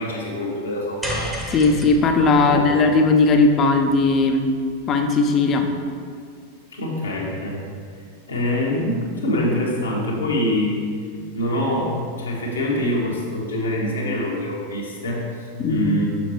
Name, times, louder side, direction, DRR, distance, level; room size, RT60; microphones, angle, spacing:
voice 1, 0.0-1.3 2.4-2.7 6.7-7.6 8.3-10.8 11.1-16.1, left 1 dB, 75° left, -3 dB, 1.4 m, -25 dB
sound 1, 1.0-5.4, right 1 dB, 5° right, 0.9 m, -34 dB
voice 2, 1.5-4.5 4.9-5.7 15.6-16.0, left 3 dB, 30° left, 5 dB, 0.6 m, -18 dB
6.8 x 5.9 x 3.1 m, 2.1 s
figure-of-eight pair, 90°, 0 cm